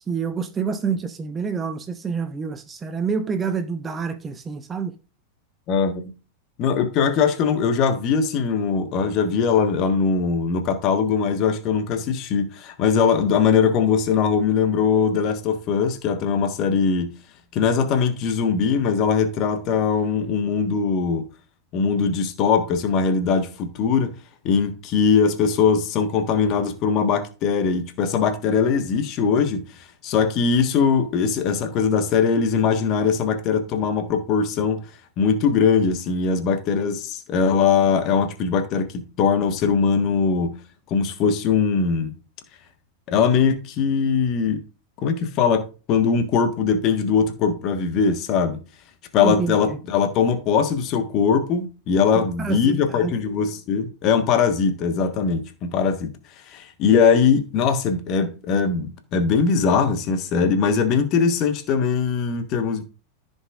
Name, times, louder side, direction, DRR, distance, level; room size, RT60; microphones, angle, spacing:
voice 1, 0.1-4.9 49.2-49.8 52.1-53.1, right 6 dB, 20° right, 0.8 m, -27 dB
voice 2, 5.7-6.1 6.6-17.1 17.5-21.2 21.7-24.1 24.4-29.6 30.0-34.8 35.2-40.5 40.9-42.1 43.1-44.6 45.0-48.6 49.1-56.1 56.5-62.8, left 6 dB, 40° left, 1.3 m, -21 dB
14.5 x 5.4 x 2.4 m
figure-of-eight pair, 90°, 0 cm